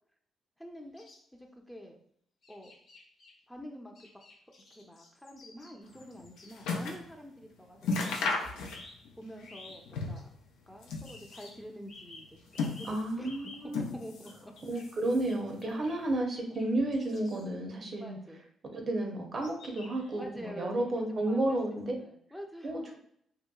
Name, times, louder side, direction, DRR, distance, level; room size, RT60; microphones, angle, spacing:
voice 1, 0.6-2.0 2.5-2.7 3.5-4.1 4.8-8.3 9.2-10.3 10.7-13.5 13.9-14.8 15.1-15.3 17.9-18.4 20.1-21.6 22.0-23.0, equal, 5° left, 2 dB, 0.5 m, -47 dB
sound 1, 1.0-1.2 2.4-3.3 3.9-6.5 7.8-9.0 9.4-9.8 10.2-10.3 11.0-11.6 11.9-13.7 14.3-14.9 15.3-15.4 15.6-16.0 16.4-16.7 16.9-17.4 19.4-20.2, left 2 dB, 60° left, 0.9 m, -52 dB
sound 2, 5.9-7.1 7.4-7.5 7.8-9.1 9.4-10.3 10.7-11.6 12.2-13.2 13.7-14.4 14.7-15.4 16.1-16.2, left 3 dB, 80° left, 0.4 m, -35 dB
voice 2, 12.9-13.8 14.7-18.2 18.7-22.0 22.6-23.0, right 1 dB, 50° right, 2 dB, 0.6 m, -32 dB
2.8 x 2.2 x 2.3 m, 0.67 s
hypercardioid pair, 45°, 0 cm